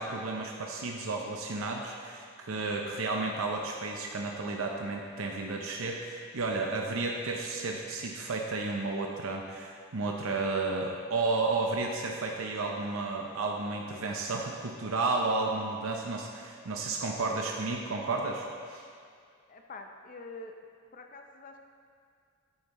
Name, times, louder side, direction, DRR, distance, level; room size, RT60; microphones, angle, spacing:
voice 1, 0.0-18.9, right 3 dB, 75° right, 1 dB, 0.7 m, -32 dB
voice 2, 19.5-20.5 20.9-21.6, left 3 dB, 40° left, 4 dB, 0.6 m, -45 dB
9.4 x 8.6 x 3.0 m, 2.2 s
head